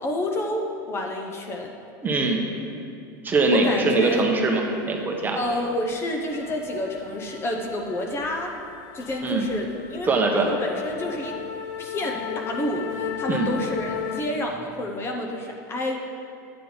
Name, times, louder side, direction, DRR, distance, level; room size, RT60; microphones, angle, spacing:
voice 1, 0.0-1.7 3.5-4.2 5.3-8.5 8.9-10.1 10.4-11.4 11.8-16.0, left 1 dB, 25° left, 2 dB, 0.8 m, -29 dB
voice 2, 2.0-2.4 3.2-5.4 9.2-9.5 10.1-10.5 13.3-13.5, right 3 dB, 20° right, 1 dB, 0.9 m, -22 dB
sound 1, 5.4-5.7 5.9-14.2, left 9 dB, 70° left, 0.6 m, -35 dB
9.0 x 8.5 x 3.9 m, 2.5 s
supercardioid pair, 140°, 10 cm